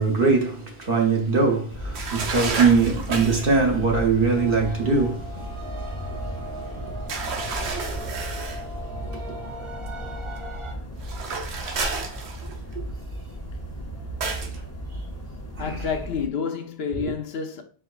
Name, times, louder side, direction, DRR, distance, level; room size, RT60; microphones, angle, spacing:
voice 1, 0.0-9.4 12.7-12.8 15.6-15.8 17.0-17.1, right 4 dB, 60° right, 1.0 m, -24 dB
sound 1, 1.7-16.3, equal, 20° left, 0.6 m, -35 dB
sound 2, 1.9-3.6 7.1-8.6 11.0-12.7 14.2-14.6, right 4 dB, 85° right, 1.0 m, -31 dB
sound 3, 4.4-10.7, equal, 40° right, 0.4 m, -39 dB
voice 2, 15.6-17.6, left 6 dB, 75° left, 0.8 m, -29 dB
4.6 x 3.8 x 2.3 m
omnidirectional pair, 1.1 m